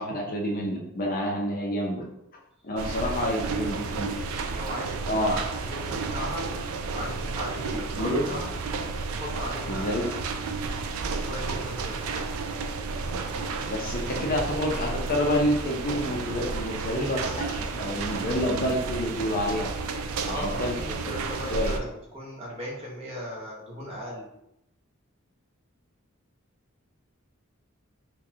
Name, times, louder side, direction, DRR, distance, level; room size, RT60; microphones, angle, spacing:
voice 1, 0.0-2.0 2.6-4.1 5.1-5.3 8.0-8.2 9.7-10.1 13.7-19.7 20.3-20.7 21.0-21.1 21.5-21.8, equal, 45° left, 0 dB, 0.6 m, -28 dB
sound 1, 2.8-21.8, right 4 dB, 85° right, 0.4 m, -32 dB
voice 2, 2.9-4.9 5.2-6.5 6.9-8.5 9.1-10.1 11.3-12.2 20.2-24.3, equal, 30° right, -5 dB, 1.2 m, -37 dB
4.8 x 2.3 x 2.7 m, 0.82 s
head